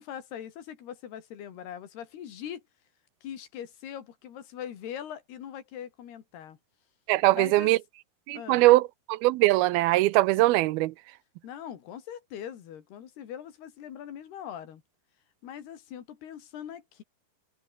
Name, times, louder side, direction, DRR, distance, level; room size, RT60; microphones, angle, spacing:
voice 1, 0.0-2.6 3.2-6.6 7.3-7.7 8.3-8.6 11.4-14.8 15.4-17.0, left 9 dB, 80° left, 4.5 m, -41 dB
voice 2, 7.1-7.8 8.3-10.9, right 18 dB, 80° right, 2.5 m, -21 dB
omnidirectional pair, 4.6 m